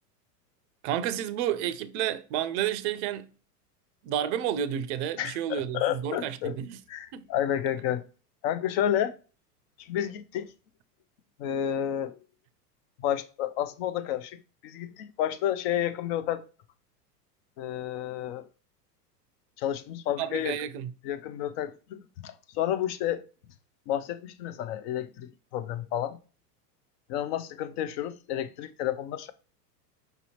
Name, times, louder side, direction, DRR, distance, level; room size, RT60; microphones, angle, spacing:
voice 1, 0.8-3.3 4.0-6.8 7.1-7.3 20.2-20.9, right 10 dB, 45° right, 0.5 m, -30 dB
voice 2, 5.2-6.6 6.9-8.0 8.4-9.2 9.8-10.5 11.4-12.2 13.0-16.4 17.6-18.5 19.6-20.6 21.0-23.2 23.9-26.2 27.1-29.3, left 11 dB, 40° left, 0.4 m, -31 dB
5.1 x 2.7 x 2.8 m
hypercardioid pair, 105°, 48 cm